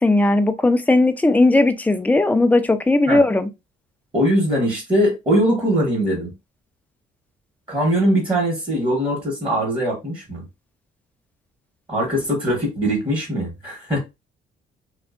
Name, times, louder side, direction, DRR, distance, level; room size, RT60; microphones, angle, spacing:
voice 1, 0.0-3.5, left 2 dB, 10° left, 0.4 m, -17 dB
voice 2, 4.1-6.3 7.7-10.4 11.9-14.0, equal, 25° right, 1.1 m, -21 dB
2.6 x 2.3 x 2.4 m
cardioid pair, 90°, 20 cm